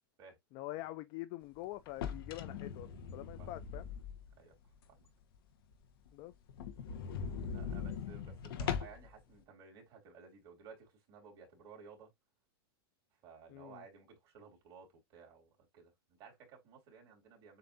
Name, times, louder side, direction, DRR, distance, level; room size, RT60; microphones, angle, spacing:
voice 1, 0.5-3.9 6.1-6.3 13.5-13.8, left 16 dB, 30° left, 0.4 m, -45 dB
sound 1, 1.9-4.4 4.8-4.9 5.4-5.5 5.7-5.8 6.1-6.2 6.5-9.1, left 7 dB, 65° left, 1.1 m, -40 dB
voice 2, 7.2-12.1 13.2-17.6, right 5 dB, 30° right, 3.2 m, -56 dB
7.6 x 2.7 x 2.6 m
supercardioid pair, 165°, 13 cm